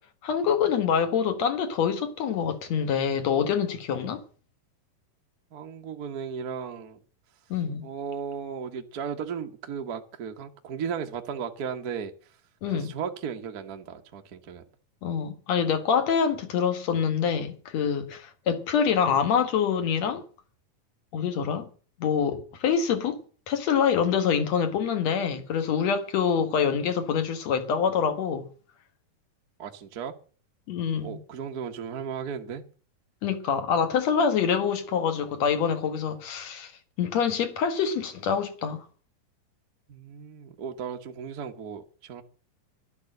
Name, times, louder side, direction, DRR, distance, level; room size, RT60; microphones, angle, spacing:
voice 1, 0.2-4.2 7.5-7.9 12.6-12.9 15.0-20.2 21.1-21.7 22.0-23.2 23.5-28.5 30.7-31.2 33.2-36.7 37.0-38.9, left 7 dB, 55° left, 2.5 m, -25 dB
voice 2, 5.5-7.0 7.8-12.1 12.7-14.6 22.3-22.4 29.6-30.1 31.0-32.6 39.9-42.2, right 7 dB, 85° right, 0.8 m, -35 dB
12.0 x 11.5 x 7.8 m
omnidirectional pair, 4.0 m